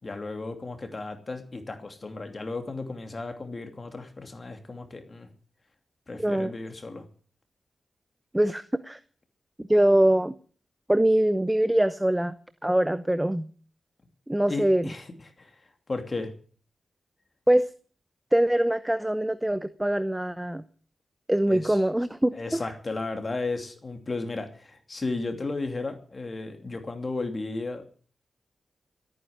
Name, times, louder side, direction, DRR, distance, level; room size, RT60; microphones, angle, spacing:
voice 1, 0.0-5.3 6.1-7.0 14.5-15.1 15.4-15.5 15.9-16.3 21.5-21.8 22.3-27.8, left 3 dB, 40° left, 6 dB, 2.7 m, -34 dB
voice 2, 6.2-6.5 8.3-9.0 9.6-10.3 10.9-12.4 12.6-13.5 14.3-14.9 17.5-17.7 18.3-20.6 21.3-22.6, right 1 dB, 10° right, 13 dB, 0.8 m, -23 dB
14.0 x 9.4 x 9.6 m, 0.43 s
cardioid pair, 80°, 0 cm